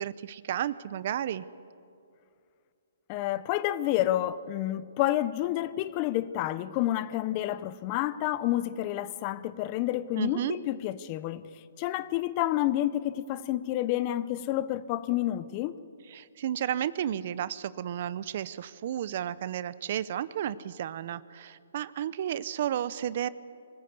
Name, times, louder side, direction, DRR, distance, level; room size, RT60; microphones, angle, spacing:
voice 1, 0.0-1.4 10.2-10.6 16.1-23.3, right 10 dB, 50° right, 0.7 m, -32 dB
voice 2, 3.1-11.4 11.8-15.8, left 14 dB, 35° left, 0.7 m, -29 dB
23.5 x 15.5 x 8.2 m
hypercardioid pair, 145°, 0 cm